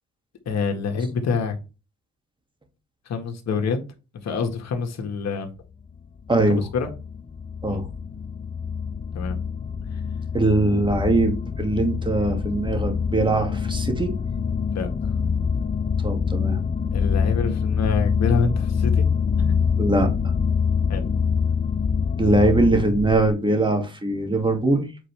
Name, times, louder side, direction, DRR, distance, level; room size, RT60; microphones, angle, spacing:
voice 1, 0.5-1.6 3.1-3.8 4.2-5.5 6.5-6.9 7.7-7.8 9.1-9.4 9.9-10.0 14.7-14.9 16.9-19.1 19.4-19.6 20.9-21.1, left 5 dB, 60° left, 1.7 m, -26 dB
sound 1, 5.8-23.3, left 6 dB, 25° left, 0.6 m, -25 dB
voice 2, 6.3-6.6 7.6-7.9 10.3-14.1 16.0-16.6 19.8-20.1 22.2-24.8, right 2 dB, 15° right, 2.2 m, -21 dB
8.3 x 4.1 x 3.4 m
cardioid pair, 90°, 30 cm